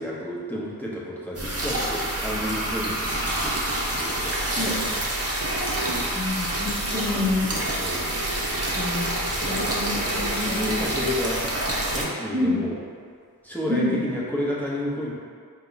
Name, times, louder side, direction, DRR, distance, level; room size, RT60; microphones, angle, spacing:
voice 1, 0.0-4.6 7.8-8.2 9.2-12.8 13.4-15.1, left 1 dB, 5° left, -7 dB, 1.0 m, -31 dB
sound 1, 1.3-12.0, right 1 dB, 40° right, 0.7 m, -27 dB
voice 2, 4.4-4.7 6.1-7.6 8.7-9.1 9.5-10.6 12.3-12.6 13.7-14.0, left 2 dB, 20° right, -8 dB, 1.1 m, -27 dB
4.4 x 2.3 x 4.0 m, 2.1 s
wide cardioid pair, 50°, 36 cm